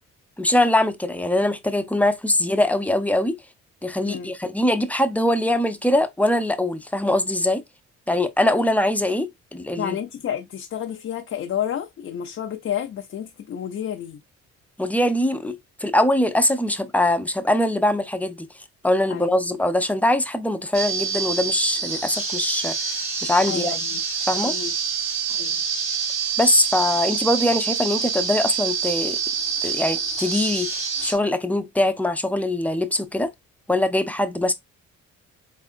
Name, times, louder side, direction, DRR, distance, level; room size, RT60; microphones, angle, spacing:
voice 1, 0.4-3.4 3.8-7.6 8.1-10.0 14.8-18.5 18.8-22.9 23.2-23.8 24.3-24.6 26.4-29.2 29.6-33.3 33.7-34.5, left 1 dB, 5° left, 0.7 m, -22 dB
voice 2, 9.8-14.2 19.1-19.3 23.5-24.0 24.4-24.7 25.3-25.6, left 9 dB, 45° left, 0.6 m, -30 dB
sound 1, 20.7-31.1, right 6 dB, 45° right, 2.1 m, -26 dB
4.1 x 3.8 x 2.4 m
cardioid pair, 90°, 30 cm